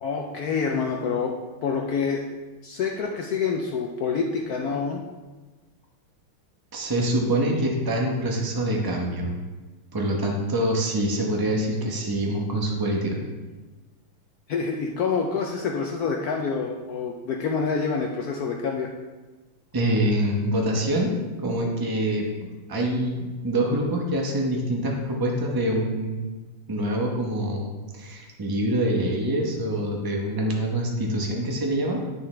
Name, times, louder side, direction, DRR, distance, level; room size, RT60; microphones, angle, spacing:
voice 1, 0.0-2.3 2.6-5.0 14.5-18.9, left 5 dB, 80° left, 1 dB, 0.8 m, -27 dB
voice 2, 6.7-9.3 9.9-13.2 19.7-21.1 21.4-22.3 22.7-26.2 26.7-32.0, right 1 dB, 35° right, 0 dB, 0.3 m, -25 dB
9.0 x 6.6 x 3.3 m, 1.2 s
omnidirectional pair, 2.3 m